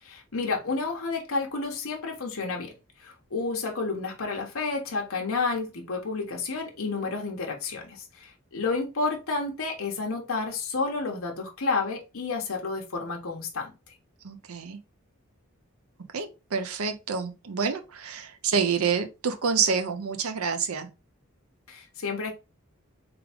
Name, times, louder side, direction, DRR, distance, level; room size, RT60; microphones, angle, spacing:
voice 1, 0.0-2.7 3.0-13.7 21.7-22.3, left 4 dB, 75° left, 0.9 m, -30 dB
voice 2, 14.2-14.8 16.1-20.9, right 6 dB, 90° right, 0.6 m, -28 dB
3.5 x 3.4 x 3.4 m
head